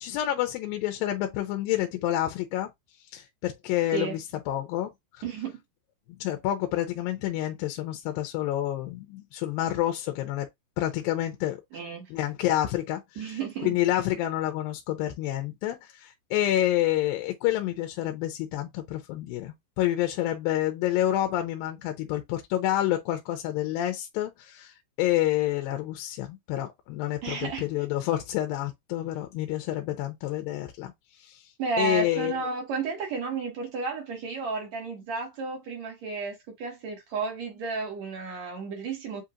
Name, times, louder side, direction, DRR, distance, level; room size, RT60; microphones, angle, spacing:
voice 1, 0.0-2.7 3.1-4.9 6.2-10.5 10.8-11.6 12.1-30.9 31.2-31.4 31.8-32.4, left 13 dB, 80° left, 2.4 m, -28 dB
voice 2, 5.2-5.6 11.7-12.1 13.2-13.8 27.2-27.7 31.6-39.2, right 5 dB, 55° right, 2.6 m, -32 dB
7.7 x 2.8 x 2.5 m
omnidirectional pair, 4.1 m